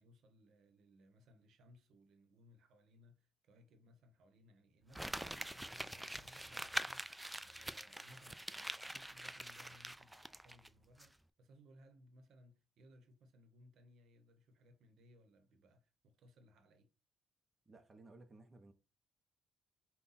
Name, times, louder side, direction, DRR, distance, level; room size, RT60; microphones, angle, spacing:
voice 1, 0.0-16.9, equal, 75° right, 0.9 m, -65 dB
Crumpling crinkling, 4.9-10.7 11.0-11.1, right 1 dB, 5° right, 0.3 m, -45 dB
voice 2, 17.7-18.7, right 2 dB, 30° right, 0.7 m, -58 dB
5.5 x 2.3 x 4.0 m
cardioid pair, 90°, 0 cm